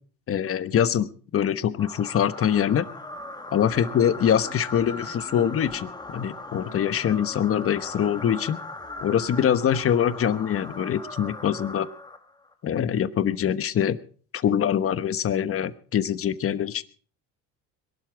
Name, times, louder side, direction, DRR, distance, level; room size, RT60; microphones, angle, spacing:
voice 1, 0.3-2.9 3.5-8.6 9.0-11.9 12.6-14.0 14.3-16.8, left 9 dB, 40° left, 14 dB, 1.1 m, -24 dB
sound 1, 1.8-12.5, left 2 dB, 10° left, 1.5 m, -39 dB
22.0 x 12.0 x 4.6 m, 0.43 s
cardioid pair, 115°, 34 cm